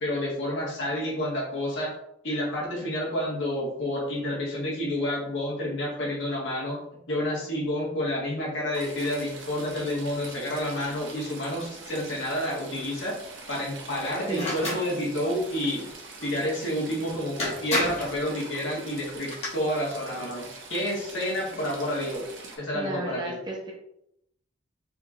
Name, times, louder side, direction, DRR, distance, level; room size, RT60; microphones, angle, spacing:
voice 1, 0.0-1.9 2.2-6.8 7.1-13.2 13.5-15.9 16.2-22.3 22.6-23.4, left 1 dB, 65° left, -4 dB, 1.7 m, -29 dB
Stream / Trickle dribble, 8.7-22.6, right 3 dB, 65° right, 1.1 m, -44 dB
sound 1, 14.3-14.8 16.9-17.0 17.4-18.1 19.1-19.5, left 1 dB, 30° left, 1.5 m, -29 dB
voice 2, 22.7-23.7, right 1 dB, 20° right, -1 dB, 0.7 m, -33 dB
4.6 x 4.4 x 2.6 m, 0.78 s
head